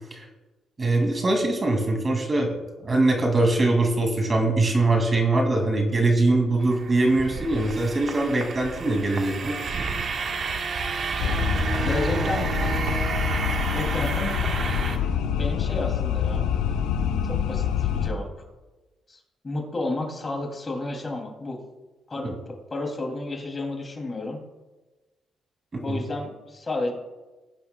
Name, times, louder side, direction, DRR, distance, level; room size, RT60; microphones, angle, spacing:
voice 1, 0.8-2.5 2.8-9.6 22.2-22.3 25.9-26.0, right 2 dB, 30° right, 2 dB, 2.4 m, -22 dB
sound 1, 6.6-15.0, right 4 dB, 55° right, 1.4 m, -30 dB
sound 2, 11.2-18.1, left 8 dB, 90° left, 0.8 m, -26 dB
voice 2, 11.8-12.5 13.7-14.4 15.3-16.5 17.2-18.3 19.1-21.6 22.1-24.4 25.8-26.9, left 2 dB, 30° left, 2 dB, 2.7 m, -31 dB
18.5 x 9.9 x 2.3 m, 1.1 s
cardioid pair, 90°, 0 cm